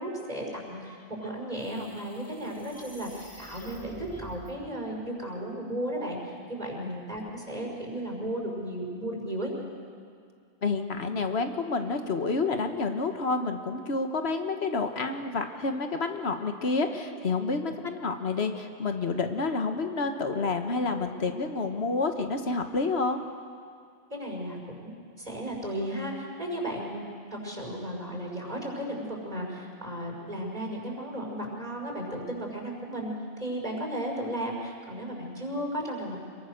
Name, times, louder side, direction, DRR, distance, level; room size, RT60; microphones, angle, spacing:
voice 1, 0.0-9.5 17.6-17.7 24.1-33.1 33.4-36.3, right 1 dB, 45° right, -1 dB, 5.8 m, -35 dB
sound 1, 0.7-4.5, equal, 15° left, 1.9 m, -48 dB
voice 2, 10.6-23.2, left 3 dB, 80° left, 6 dB, 1.6 m, -29 dB
26.5 x 22.5 x 6.6 m, 2.3 s
omnidirectional pair, 1.1 m